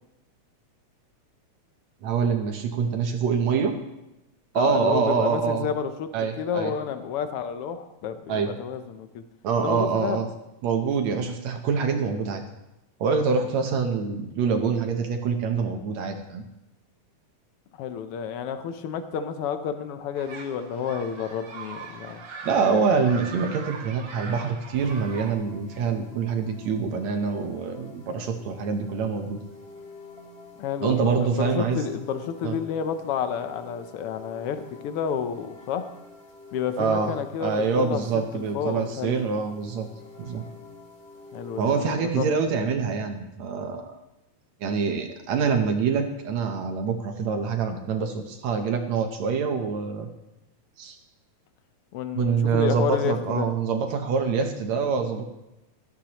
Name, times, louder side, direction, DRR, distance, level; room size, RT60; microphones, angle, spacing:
voice 1, 2.0-3.8 4.5-5.7 6.1-6.7 8.3-8.5 9.4-10.3 10.6-12.4 13.0-16.4 22.4-29.4 30.8-31.8 32.4-32.5 36.8-37.1 37.4-39.9 40.2-40.4 41.6-44.0 44.6-50.1 50.8-51.0 52.1-55.3, right 5 dB, 70° right, 4 dB, 2.1 m, -25 dB
voice 2, 4.5-6.1 6.4-9.2 9.6-10.2 17.8-22.2 30.6-31.0 31.4-35.8 36.5-39.3 41.3-42.3 51.9-53.5, left 7 dB, 75° left, 9 dB, 1.3 m, -30 dB
sound 1, 20.1-25.3, right 4 dB, 50° right, 2.4 m, -40 dB
sound 2, 24.7-41.8, left 3 dB, 30° left, 1.2 m, -47 dB
17.0 x 13.5 x 3.0 m, 0.94 s
omnidirectional pair, 3.5 m